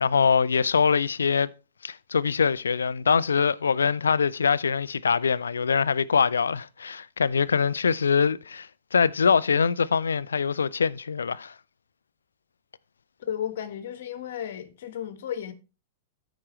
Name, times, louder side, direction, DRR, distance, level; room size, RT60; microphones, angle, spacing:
voice 1, 0.0-1.5 1.8-11.5, left 6 dB, 85° left, 0.4 m, -23 dB
voice 2, 13.3-15.5, left 10 dB, 65° left, 1.2 m, -33 dB
14.0 x 5.0 x 3.1 m
hypercardioid pair, 110°, 0 cm